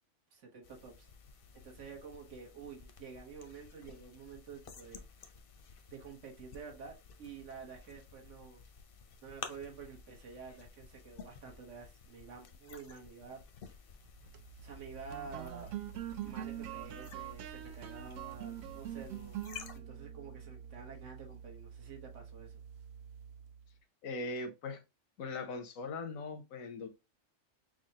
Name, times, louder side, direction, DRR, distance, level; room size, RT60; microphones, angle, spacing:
voice 1, 0.3-1.1 1.5-5.0 5.9-8.6 9.2-13.8 14.6-15.8 16.2-19.4 19.7-22.6, right 5 dB, 65° right, 1.5 m, -49 dB
sound 1, 0.6-19.8, left 6 dB, 55° left, 0.7 m, -53 dB
sound 2, 14.1-23.7, right 10 dB, 90° right, 1.0 m, -45 dB
voice 2, 24.0-24.8 25.2-26.9, left 3 dB, 85° left, 1.2 m, -40 dB
6.0 x 2.3 x 2.8 m
omnidirectional pair, 1.4 m